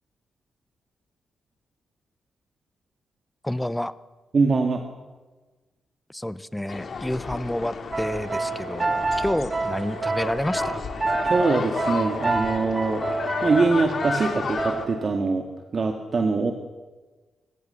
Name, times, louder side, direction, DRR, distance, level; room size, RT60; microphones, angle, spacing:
voice 1, 3.4-3.9 6.1-10.8, left 1 dB, 5° left, 16 dB, 0.8 m, -29 dB
voice 2, 4.3-4.8 11.2-13.0 13.4-15.5 15.7-16.5, right 4 dB, 45° right, 4 dB, 1.9 m, -23 dB
sound 1, 6.7-14.9, left 4 dB, 55° left, 2.5 m, -32 dB
sound 2, 7.9-15.2, right 3 dB, 30° right, 2.2 m, -29 dB
26.0 x 15.0 x 6.9 m, 1.3 s
cardioid pair, 90°, 0 cm